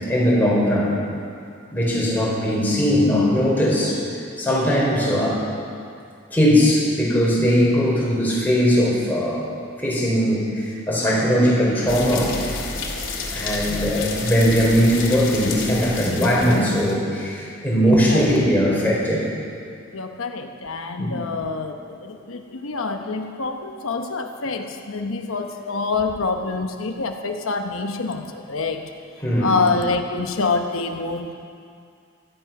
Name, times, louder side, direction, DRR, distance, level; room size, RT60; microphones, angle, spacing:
voice 1, 0.1-1.0 1.7-4.0 4.4-5.4 6.3-9.5 9.8-12.3 13.3-19.3 21.0-21.2 29.2-29.5, equal, 10° left, -6 dB, 4.2 m, -19 dB
sound 1, 11.9-16.9, left 3 dB, 65° left, 2.6 m, -30 dB
voice 2, 19.9-28.9 29.4-31.3, left 4 dB, 90° left, 5 dB, 0.9 m, -26 dB
16.5 x 13.0 x 6.0 m, 2.3 s
head